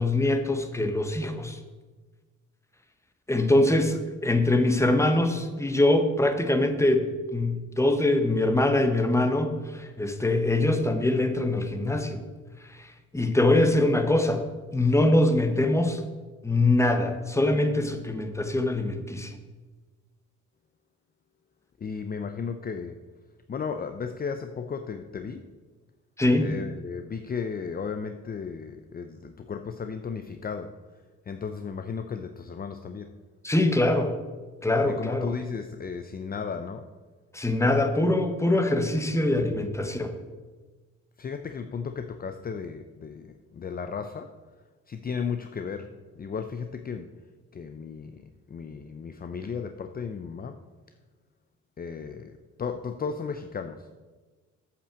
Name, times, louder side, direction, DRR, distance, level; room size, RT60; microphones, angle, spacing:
voice 1, 0.0-1.6 3.3-12.2 12.7-14.5 14.7-16.0 16.4-19.3 26.2-26.5 33.4-34.1 34.6-35.3 37.3-40.1, left 2 dB, 10° left, 7 dB, 1.2 m, -23 dB
voice 2, 21.8-23.0 23.5-25.4 26.4-30.7 31.3-33.1 34.9-36.9 41.2-44.3 44.9-45.9 46.2-47.1 47.5-48.2 48.5-50.6 51.8-52.3 52.6-53.9, left 6 dB, 30° left, 7 dB, 0.6 m, -34 dB
8.4 x 5.8 x 7.6 m, 1.3 s
cardioid pair, 90°, 30 cm